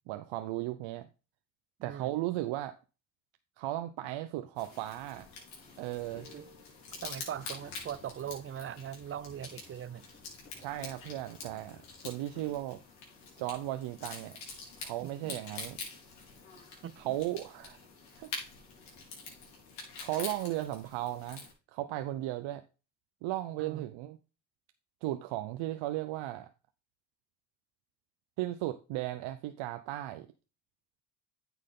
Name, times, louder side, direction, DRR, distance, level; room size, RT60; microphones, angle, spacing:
voice 1, 0.1-1.1 1.8-2.7 3.6-5.3 5.8-6.3 10.5-12.8 13.4-14.4 14.8-15.8 17.0-17.8 18.2-18.3 20.0-22.6 23.2-24.2 25.0-26.5 28.4-30.3, right 15 dB, 80° right, 0.8 m, -36 dB
voice 2, 1.8-2.2 6.3-6.5 7.0-10.1 15.0-15.3 16.8-17.0 23.6-23.9, right 10 dB, 30° right, 0.5 m, -41 dB
sound 1, 4.6-21.5, left 4 dB, 75° left, 4.2 m, -46 dB
sound 2, 7.1-12.6, left 4 dB, 25° left, 1.8 m, -59 dB
9.3 x 6.4 x 3.7 m
supercardioid pair, 85°, 46 cm